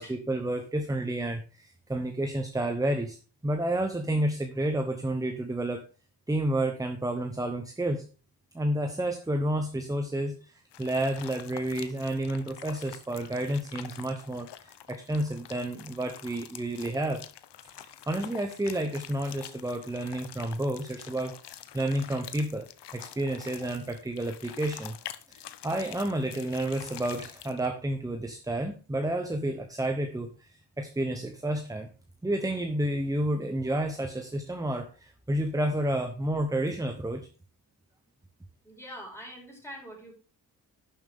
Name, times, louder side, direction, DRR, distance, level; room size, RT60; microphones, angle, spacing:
voice 1, 0.0-3.2 3.4-5.8 6.3-8.0 8.5-17.2 17.8-21.4 21.7-22.7 22.9-25.0 25.3-31.9 32.2-37.3, right 1 dB, 10° right, 6 dB, 0.8 m, -30 dB
sound 1, 10.7-27.7, left 11 dB, 85° left, 0.8 m, -46 dB
voice 2, 38.6-40.1, equal, 5° left, -2 dB, 5.1 m, -44 dB
11.5 x 7.2 x 3.6 m, 0.34 s
wide cardioid pair, 125°, 40 cm